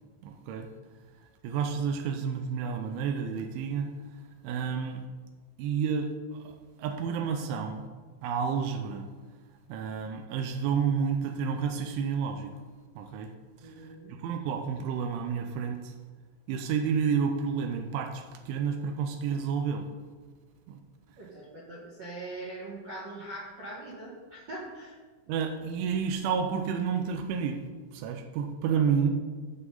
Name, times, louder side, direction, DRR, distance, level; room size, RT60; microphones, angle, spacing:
voice 1, 0.2-0.7 1.4-3.9 4.4-5.1 5.6-7.9 8.2-9.1 9.7-12.5 13.0-13.3 13.6-13.9 14.2-15.9 16.5-19.9 20.7-20.8 25.3-27.6 27.9-29.2, right 6 dB, 90° right, 5 dB, 3.1 m, -30 dB
voice 2, 13.6-14.1 21.2-25.0 28.7-28.9, right 2 dB, 55° right, -7 dB, 2.0 m, -42 dB
15.5 x 6.0 x 4.0 m, 1.4 s
omnidirectional pair, 5.4 m